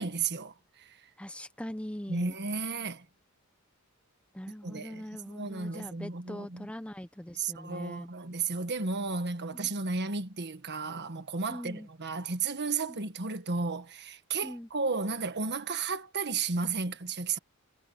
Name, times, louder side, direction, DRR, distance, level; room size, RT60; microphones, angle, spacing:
voice 1, 0.0-1.0 2.1-3.0 4.6-6.7 7.4-17.4, right 4 dB, 50° right, 1.6 m, -33 dB
voice 2, 1.2-2.3 4.3-8.1 9.6-9.7 11.5-11.9 12.9-13.0 14.4-14.7, equal, 5° left, 0.8 m, -42 dB
head